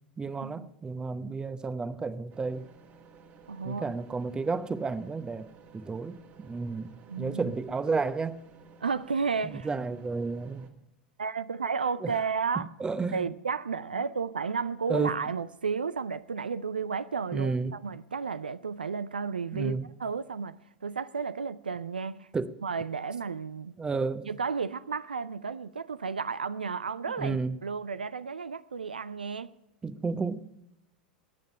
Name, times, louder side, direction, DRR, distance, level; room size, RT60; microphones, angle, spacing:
voice 1, 0.2-2.7 3.6-5.5 5.7-6.9 7.2-8.4 9.4-10.7 12.0-12.1 12.8-13.3 14.9-15.2 17.3-17.8 19.5-19.9 22.3-22.6 23.8-24.3 27.2-27.5 29.8-30.5, right 4 dB, 15° right, 0.9 m, -32 dB
sound 1, 2.3-10.7, right 5 dB, 40° right, 2.0 m, -55 dB
voice 2, 3.5-3.9 7.1-7.5 8.8-9.7 11.2-12.7 13.1-20.6 20.8-22.3 22.6-23.7 24.3-29.5, right 5 dB, 85° right, 0.5 m, -32 dB
20.5 x 9.4 x 5.5 m
figure-of-eight pair, 90°, 5 cm